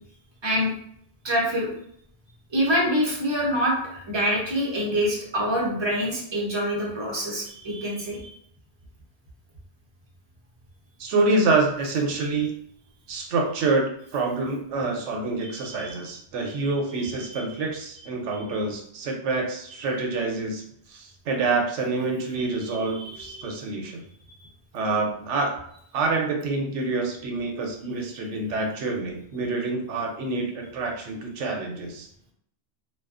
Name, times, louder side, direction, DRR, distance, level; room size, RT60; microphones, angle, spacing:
voice 1, 1.2-1.7 2.5-3.7 4.1-8.2 15.5-15.9 23.0-23.5, equal, 30° right, -4 dB, 0.6 m, -25 dB
voice 2, 11.0-12.5 13.1-20.6 20.9-24.0 24.7-25.5 25.9-32.1, right 3 dB, 80° right, 1 dB, 0.9 m, -27 dB
2.3 x 2.3 x 2.4 m, 0.67 s
omnidirectional pair, 1.2 m